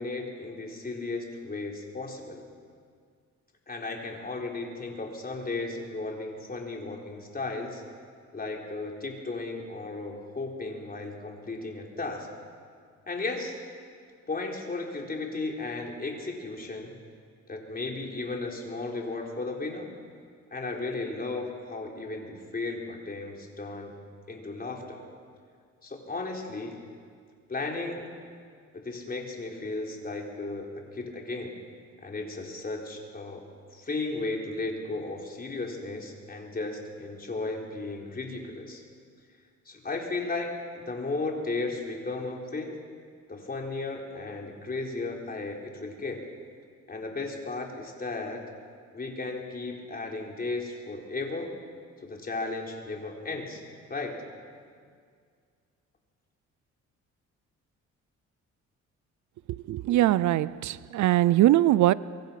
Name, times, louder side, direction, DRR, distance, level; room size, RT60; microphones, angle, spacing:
voice 1, 0.0-2.4 3.7-7.8 8.3-12.3 13.1-13.6 14.3-16.9 17.5-19.9 20.5-24.0 24.3-25.0 25.8-26.8 27.5-28.1 28.7-31.6 32.0-33.4 33.7-38.8 39.7-42.7 43.3-46.3 46.9-48.4 48.9-51.5 52.0-53.6 53.9-54.1, left 3 dB, 30° left, 0 dB, 4.2 m, -35 dB
voice 2, 59.7-61.9, right 14 dB, 75° right, 19 dB, 0.6 m, -21 dB
24.0 x 23.0 x 5.9 m, 2.1 s
cardioid pair, 90°, 30 cm